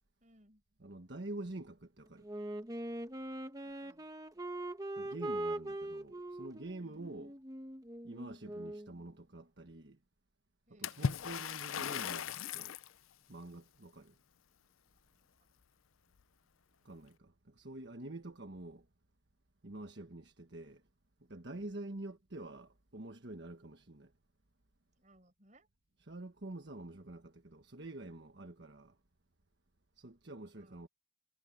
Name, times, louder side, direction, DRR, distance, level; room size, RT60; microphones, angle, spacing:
voice 1, 0.2-0.6 3.6-4.1 6.8-7.1 10.7-11.4 15.2-15.3 21.7-22.0 24.9-25.7 30.5-30.8, right 1 dB, 35° right, 6.3 m, -65 dB
voice 2, 0.8-2.3 5.0-7.3 8.0-10.0 10.8-12.7 13.3-14.1 16.8-18.8 19.6-20.8 21.3-24.1 26.1-29.0 30.0-30.9, right 2 dB, 55° right, 1.4 m, -47 dB
Wind instrument woodwind instrument, 2.2-8.9, right 1 dB, 20° right, 1.2 m, -42 dB
Water / Splash splatter, 10.8-12.9, left 7 dB, 85° left, 0.5 m, -37 dB
head